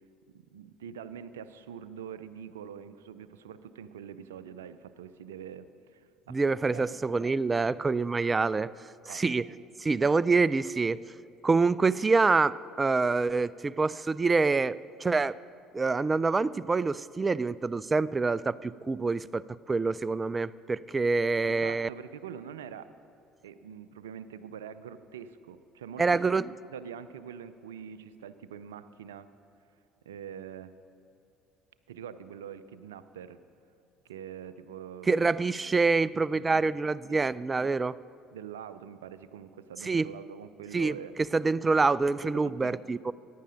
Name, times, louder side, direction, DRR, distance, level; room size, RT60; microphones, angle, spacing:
voice 1, 0.3-6.3 6.7-7.1 9.1-9.2 21.4-22.9 23.4-29.3 30.1-30.7 31.9-33.4 34.1-35.3 36.0-36.6 37.1-37.3 38.3-41.1 42.2-42.9, right 8 dB, 80° right, 13 dB, 0.5 m, -44 dB
voice 2, 6.3-8.7 9.1-9.4 9.8-11.0 11.4-15.4 15.7-19.4 19.7-21.9 26.0-26.5 35.1-38.0 39.8-40.1 40.7-41.0 41.3-43.1, right 4 dB, 25° right, 20 dB, 0.3 m, -26 dB
14.5 x 10.0 x 5.1 m, 2.6 s
hypercardioid pair, 60°, 0 cm